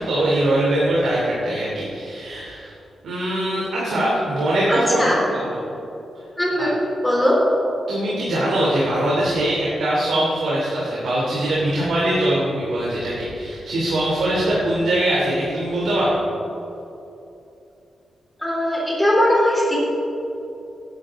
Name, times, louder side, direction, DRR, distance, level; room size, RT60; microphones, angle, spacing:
voice 1, 0.0-2.7 3.0-5.0 5.4-5.6 6.6-6.7 7.9-16.1, right 1 dB, 85° right, -6 dB, 3.1 m, -22 dB
voice 2, 4.7-5.3 6.4-6.8 7.0-7.4 18.4-19.8, equal, 10° left, -4 dB, 3.5 m, -19 dB
18.5 x 10.5 x 3.8 m, 2.9 s
cardioid pair, 110°, 0 cm